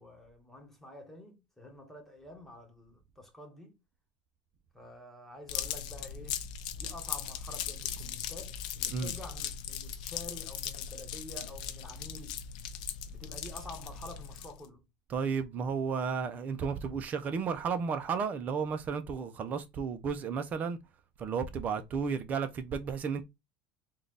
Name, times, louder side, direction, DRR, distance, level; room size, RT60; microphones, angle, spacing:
voice 1, 0.0-3.8 4.7-6.4 6.7-12.4 13.1-14.8, left 1 dB, 5° left, 1.5 m, -48 dB
sound 1, 5.5-14.7, left 9 dB, 80° left, 0.6 m, -39 dB
voice 2, 15.1-20.8 21.2-23.2, right 6 dB, 40° right, 0.8 m, -33 dB
3.7 x 2.6 x 3.3 m
supercardioid pair, 110°, 4 cm